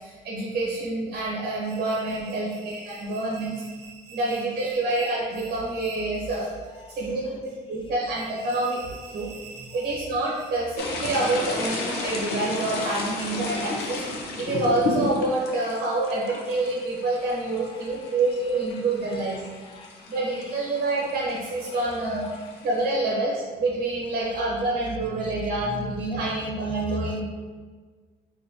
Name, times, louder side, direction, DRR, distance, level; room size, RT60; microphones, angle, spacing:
voice 1, 0.0-3.5 4.1-6.5 6.9-7.2 7.7-8.8 9.1-9.3 9.7-14.0 14.4-19.4 20.1-22.2 22.6-27.2, right 2 dB, 55° right, -4 dB, 1.0 m, -27 dB
sound 1, 1.6-10.7, right 5 dB, 85° right, 0.7 m, -48 dB
voice 2, 6.7-7.4 7.7-7.9 9.2-9.4 9.7-10.0 16.5-16.6 17.5-21.1 21.7-22.5 26.7-27.2, left 5 dB, 30° left, 5 dB, 0.4 m, -50 dB
sound 2, 10.8-22.8, left 3 dB, 75° left, 0.7 m, -33 dB
4.0 x 3.0 x 2.8 m, 1.5 s
cardioid pair, 110°, 17 cm